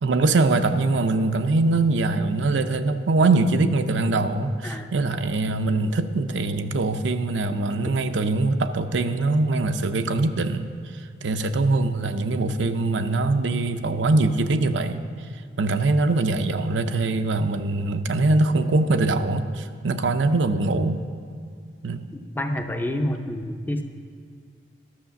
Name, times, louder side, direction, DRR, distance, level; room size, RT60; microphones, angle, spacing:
voice 1, 0.0-10.7 10.9-15.0 15.6-21.0 21.8-22.1, right 2 dB, 75° right, 9 dB, 0.6 m, -22 dB
voice 2, 22.3-23.8, left 1 dB, 10° left, 5 dB, 0.5 m, -28 dB
11.5 x 6.5 x 6.9 m, 2.1 s
head